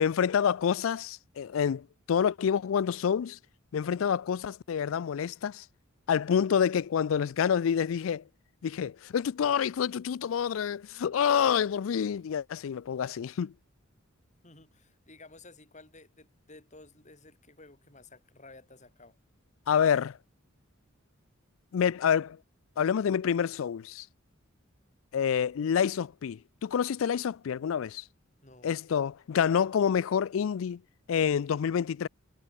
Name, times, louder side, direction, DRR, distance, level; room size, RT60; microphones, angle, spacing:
voice 1, 0.0-3.4 3.7-5.6 6.1-8.2 8.6-13.5 19.7-20.2 21.7-22.4 22.8-24.1 25.1-28.0 28.6-30.8 31.1-32.1, left 7 dB, 75° left, 0.4 m, -27 dB
voice 2, 14.4-19.2 28.4-28.7, left 2 dB, 35° left, 8.0 m, -54 dB
head